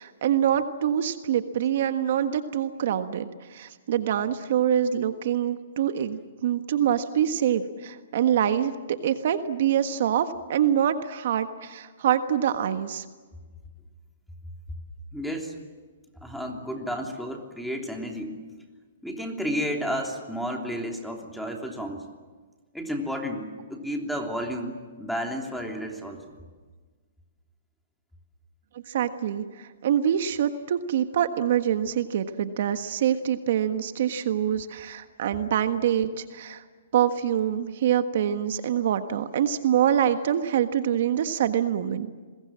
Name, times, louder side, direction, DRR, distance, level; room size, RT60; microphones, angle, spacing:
voice 1, 0.0-13.0 28.9-36.6 36.9-42.1, right 9 dB, 60° right, 9 dB, 1.4 m, -25 dB
voice 2, 15.1-15.5 16.2-18.4 19.0-22.0 22.7-26.4, equal, ahead, 1 dB, 3.2 m, -32 dB
30.0 x 21.5 x 7.5 m, 1.4 s
hypercardioid pair, 150°, 0 cm